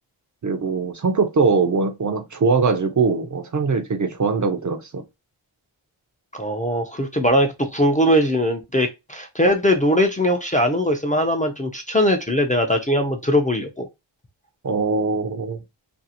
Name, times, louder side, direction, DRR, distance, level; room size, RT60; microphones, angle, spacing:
voice 1, 0.4-5.0 14.6-15.6, right 4 dB, 40° right, 0.5 m, -21 dB
voice 2, 6.3-13.9, equal, 20° left, 0.4 m, -20 dB
2.6 x 2.3 x 2.7 m
wide cardioid pair, 90°, 49 cm